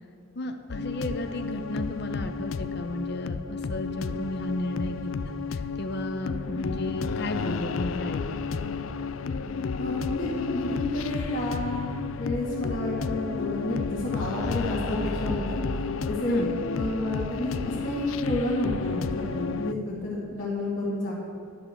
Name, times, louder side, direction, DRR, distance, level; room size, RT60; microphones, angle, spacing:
voice 1, 0.3-8.6 16.3-16.5, left 1 dB, 55° left, 6 dB, 1.0 m, -33 dB
sound 1, 0.7-19.7, left 5 dB, 70° left, 0.4 m, -32 dB
sound 2, 7.3-15.6, equal, 15° right, 2.0 m, -42 dB
voice 2, 9.8-11.9 12.2-15.6 16.0-21.1, left 1 dB, 35° left, -9 dB, 2.1 m, -30 dB
11.0 x 6.7 x 7.9 m, 2.6 s
head